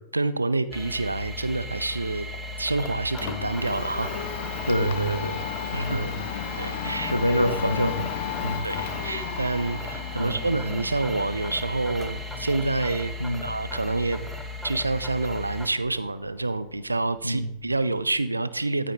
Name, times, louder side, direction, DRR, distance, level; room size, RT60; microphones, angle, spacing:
voice 1, 0.1-2.3 2.6-4.1 5.7-6.1 6.6-7.1 8.6-13.2 13.4-14.3 14.6-18.9, right 2 dB, 80° right, 14 dB, 0.4 m, -27 dB
sound 1, 0.7-15.7, left 1 dB, ahead, 1.0 m, -36 dB
Domestic sounds home sounds, 2.3-18.2, left 8 dB, 50° left, 0.8 m, -36 dB
voice 2, 4.7-6.1 7.1-8.1 8.4-8.7 10.2-10.3 13.2-13.5 17.2-17.5, equal, 90° left, 9 dB, 0.7 m, -26 dB
14.5 x 5.0 x 3.2 m, 0.76 s
figure-of-eight pair, 90°, 0 cm